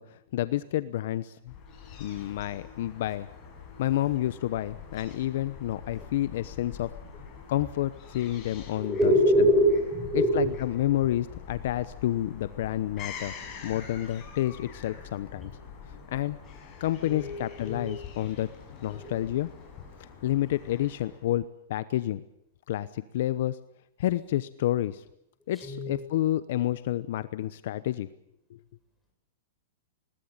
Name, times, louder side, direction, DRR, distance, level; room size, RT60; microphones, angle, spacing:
voice 1, 0.0-1.5 2.0-3.3 3.8-6.9 7.5-9.1 10.1-13.3 13.6-15.5 16.1-16.4 16.8-18.5 18.8-19.5 20.2-21.4 21.7-22.2 22.7-23.6 24.0-25.0 25.5-28.1 28.5-28.6, left 13 dB, 55° left, 14 dB, 0.9 m, -29 dB
Fowl / Gull seagull, 1.5-21.4, left 6 dB, 25° left, 6.9 m, -45 dB
voice 2, 8.8-10.5 10.9-11.0 17.1-17.4 17.6-17.9 18.9-19.1 25.6-25.9, equal, ahead, -1 dB, 7.4 m, -24 dB
21.0 x 19.0 x 8.9 m, 0.78 s
supercardioid pair, 160°, 0 cm